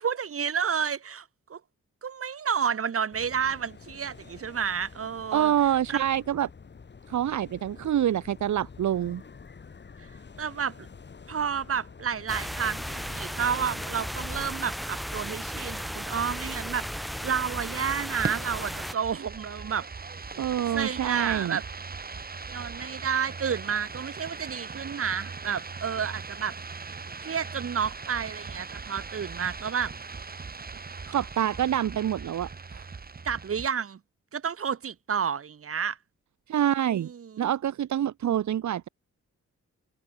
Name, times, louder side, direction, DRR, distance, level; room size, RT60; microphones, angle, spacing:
voice 1, 0.0-1.6 2.0-5.5 5.9-6.0 10.0-10.1 10.4-10.9 11.3-19.9 20.4-20.5 20.7-21.6 22.5-26.9 27.2-29.9 33.2-34.0 34.3-36.0 36.9-37.5, right 7 dB, 50° right, 2.3 m, -31 dB
sound 1, 3.1-14.6, left 5 dB, 40° left, 5.1 m, -48 dB
voice 2, 5.3-6.5 7.1-9.2 20.4-21.6 30.9-32.9 36.5-37.1 37.4-38.9, right 10 dB, 75° right, 0.9 m, -26 dB
sound 2, 12.3-18.9, equal, ahead, 2.4 m, -35 dB
sound 3, 15.9-33.7, right 4 dB, 30° right, 4.9 m, -40 dB
wide cardioid pair, 180°, 29 cm